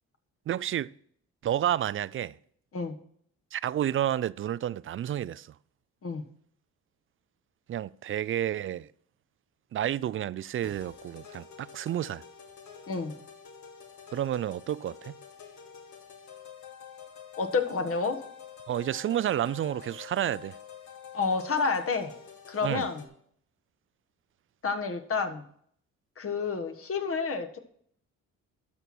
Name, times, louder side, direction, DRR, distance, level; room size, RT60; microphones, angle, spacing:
voice 1, 0.5-0.9 1.4-2.4 3.5-5.5 7.7-8.9 9.7-12.2 14.1-15.2 18.7-20.6 22.6-22.9, right 11 dB, 45° right, 0.4 m, -30 dB
sound 1, 10.6-23.1, left 7 dB, 70° left, 2.1 m, -48 dB
voice 2, 17.4-18.2 21.1-22.1 22.5-23.0 24.6-25.4 26.2-27.6, left 4 dB, 45° left, 1.5 m, -29 dB
12.0 x 6.2 x 4.3 m
cardioid pair, 90°, 30 cm